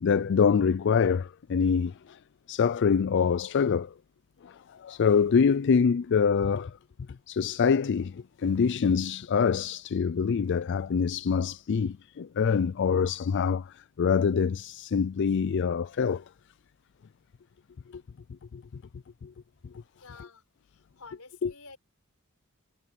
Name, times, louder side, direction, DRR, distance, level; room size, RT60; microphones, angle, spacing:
voice 1, 0.0-2.2 2.5-3.9 4.4-6.8 7.3-16.2 17.9-18.0 18.5-18.6 19.2-19.3 21.4-21.5, left 6 dB, 55° left, 0.4 m, -25 dB
voice 2, 20.0-21.8, left 4 dB, 85° left, 4.5 m, -50 dB
head